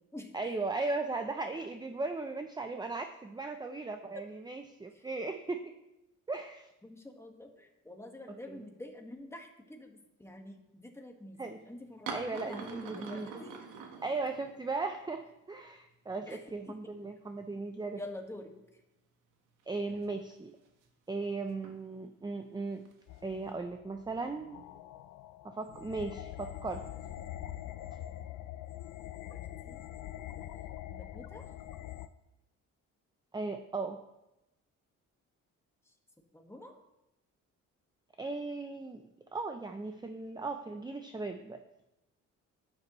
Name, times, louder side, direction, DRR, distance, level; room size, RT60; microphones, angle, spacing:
voice 1, 0.3-5.7 6.3-6.7 8.5-8.6 11.4-11.6 12.1-13.4 14.0-18.0 19.7-20.5 21.1-22.8 23.2-24.6 25.4-26.8 33.3-34.0 38.2-39.0 39.3-41.6, right 3 dB, 15° right, 7 dB, 0.6 m, -37 dB
voice 2, 6.8-13.5 13.8-13.9 16.3-16.4 16.7-16.9 17.9-18.5 29.3-29.8 30.4-31.5 36.3-36.8, left 1 dB, 10° left, 2 dB, 1.7 m, -48 dB
sound 1, 12.1-14.9 15.2-15.3 16.3-16.4 16.7-17.5 18.0-18.1 19.6-20.9 21.5-21.8 22.9-23.5, right 5 dB, 90° right, 1.5 m, -45 dB
sound 2, 23.1-32.1, left 13 dB, 80° left, 0.6 m, -44 dB
11.5 x 9.7 x 3.1 m, 0.92 s
cardioid pair, 90°, 30 cm